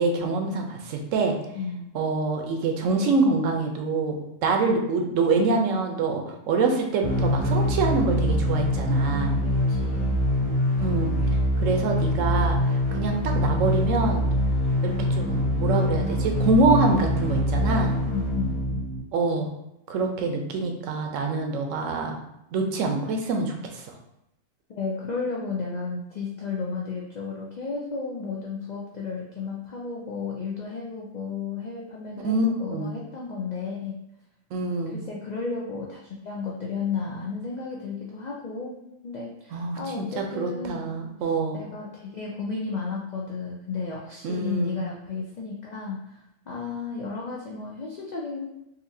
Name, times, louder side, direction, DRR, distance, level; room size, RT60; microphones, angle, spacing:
voice 1, 0.0-1.4 1.9-6.2 6.5-9.4 10.8-11.1 11.6-14.2 14.8-17.9 19.1-19.5 19.9-22.2 22.5-23.9 32.2-32.9 34.5-35.0 39.5-41.6 44.2-44.8, right 3 dB, 75° right, 3 dB, 1.0 m, -25 dB
voice 2, 1.5-1.9 9.4-10.2 18.1-18.9 24.8-33.9 34.9-38.8 39.0-41.0 41.5-46.2 46.5-48.4, left 4 dB, 75° left, -3 dB, 0.4 m, -33 dB
sound 1, 7.0-19.0, left 1 dB, 55° left, 1.5 m, -24 dB
4.1 x 2.5 x 2.6 m, 0.83 s
omnidirectional pair, 1.4 m